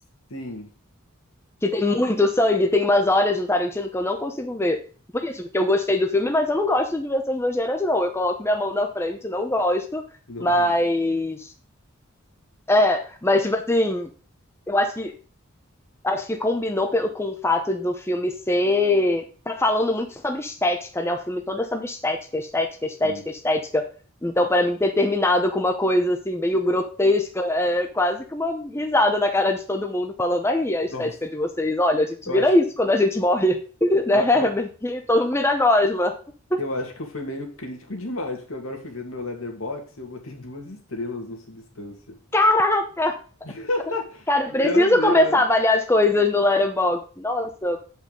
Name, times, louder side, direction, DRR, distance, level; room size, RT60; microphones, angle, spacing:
voice 1, 0.3-0.7 10.3-10.7 23.0-23.2 30.9-31.1 32.3-32.5 34.1-34.5 36.6-42.2 43.4-45.4, left 2 dB, 75° left, 3 dB, 2.2 m, -32 dB
voice 2, 1.6-4.8 5.1-10.0 10.4-11.5 12.7-14.1 14.7-15.1 16.0-23.8 24.2-36.1 36.5-36.6 42.3-43.2 44.3-47.8, left 1 dB, 10° left, 5 dB, 0.7 m, -22 dB
8.2 x 5.4 x 5.2 m, 0.38 s
head